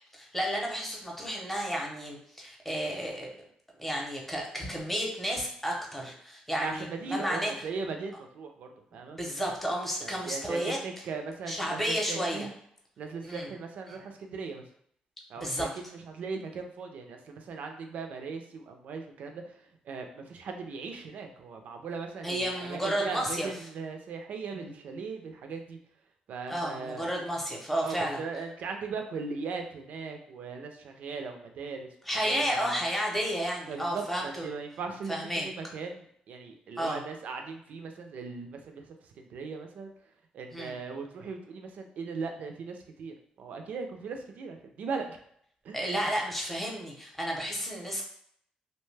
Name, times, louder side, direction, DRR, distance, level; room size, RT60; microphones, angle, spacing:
voice 1, 0.1-3.3 3.8-7.5 9.1-10.8 11.5-12.5 13.2-13.5 15.4-15.7 22.2-23.5 26.5-28.2 32.1-34.4 35.1-35.5 36.8-37.0 40.5-40.7 45.7-48.0, equal, 5° left, -1 dB, 0.7 m, -32 dB
voice 2, 6.6-9.2 10.0-12.5 13.0-14.6 15.3-25.8 26.3-27.1 27.8-31.9 32.2-32.8 33.7-39.9 40.3-45.2 45.6-46.1, right 4 dB, 70° right, 4 dB, 0.4 m, -39 dB
2.7 x 2.1 x 3.2 m, 0.67 s
cardioid pair, 120°, 3 cm